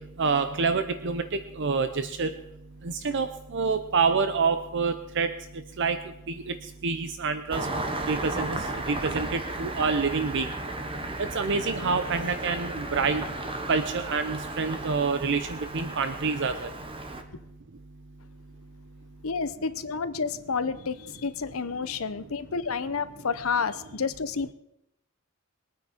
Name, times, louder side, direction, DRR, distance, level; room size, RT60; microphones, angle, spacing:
voice 1, 0.2-1.2 1.6-2.3 2.8-5.3 5.8-6.0 6.3-6.5 6.8-7.7 8.1-8.6 8.9-10.5 11.2-13.2 13.7-16.7, right 4 dB, 55° right, 10 dB, 0.7 m, -27 dB
Engine starting, 7.5-17.2, right 2 dB, 25° right, 1.2 m, -34 dB
voice 2, 19.2-24.5, left 5 dB, 70° left, 12 dB, 0.8 m, -30 dB
21.5 x 9.4 x 4.4 m, 0.84 s
head